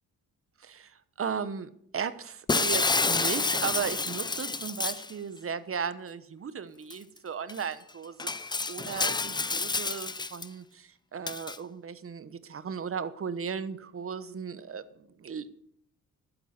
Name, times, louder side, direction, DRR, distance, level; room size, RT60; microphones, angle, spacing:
voice 1, 0.6-15.5, right 6 dB, 45° right, 14 dB, 1.0 m, -36 dB
Shatter, 2.5-5.1 6.9-7.0 7.5-7.6 8.2-10.5 11.3-11.6, left 3 dB, 15° left, 0.5 m, -29 dB
11.5 x 8.0 x 8.1 m, 0.69 s
cardioid pair, 90°, 32 cm